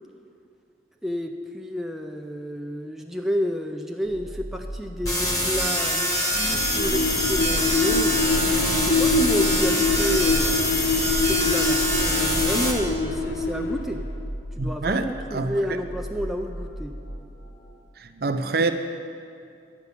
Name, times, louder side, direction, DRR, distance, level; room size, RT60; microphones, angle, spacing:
voice 1, 1.0-8.3 8.7-10.7 11.2-14.0 14.6-16.9, equal, ahead, 3 dB, 0.4 m, -30 dB
sound 1, 4.0-17.8, equal, 40° left, 1.1 m, -38 dB
sound 2, 5.1-12.7, equal, 20° left, 1.2 m, -25 dB
sound 3, 6.4-14.2, left 3 dB, 75° left, 0.7 m, -25 dB
voice 2, 14.6-15.8 18.0-18.7, right 3 dB, 55° right, 8 dB, 0.5 m, -26 dB
9.6 x 5.9 x 8.2 m, 2.4 s
head